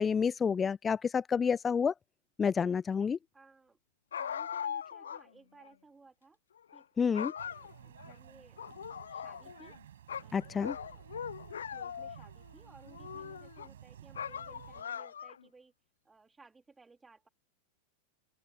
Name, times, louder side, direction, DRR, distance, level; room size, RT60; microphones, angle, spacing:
voice 1, 0.0-1.9 2.4-3.2 7.0-7.3 10.3-10.8, left 6 dB, 20° left, 0.4 m, -29 dB
voice 2, 3.3-3.8 4.2-6.4 6.7-8.7 9.1-9.8 10.2-11.3 11.7-15.7 16.1-17.3, right 4 dB, 10° right, 3.4 m, -60 dB
sound 1, 4.1-5.2 5.6-5.7 6.6-6.8 7.1-8.1 8.6-9.8 10.1-12.3 12.8-13.7 14.1-15.5, left 8 dB, 65° left, 0.5 m, -40 dB
sound 2, 7.4-14.8, right 10 dB, 60° right, 5.3 m, -53 dB
open air
figure-of-eight pair, 90°, 0 cm